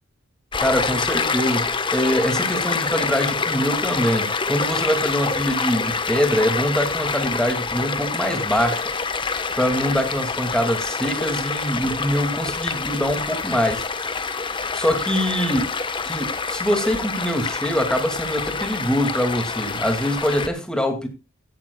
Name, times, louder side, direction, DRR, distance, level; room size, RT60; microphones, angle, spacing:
Stream, 0.5-20.5, left 4 dB, 25° left, 1.0 m, -26 dB
voice 1, 0.6-8.8 9.6-13.8 14.7-15.7 16.1-21.1, equal, 5° left, 2.1 m, -23 dB
16.5 x 12.0 x 2.2 m
head